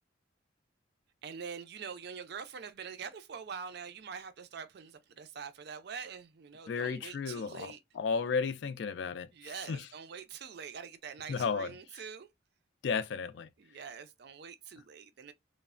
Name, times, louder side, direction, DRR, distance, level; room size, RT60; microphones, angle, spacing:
voice 1, 1.2-7.8 9.3-12.3 13.6-15.3, right 6 dB, 55° right, 0.4 m, -44 dB
voice 2, 6.7-9.3 9.7-9.9 11.3-11.7 12.8-13.5, left 5 dB, 65° left, 0.3 m, -33 dB
3.1 x 2.0 x 2.4 m
head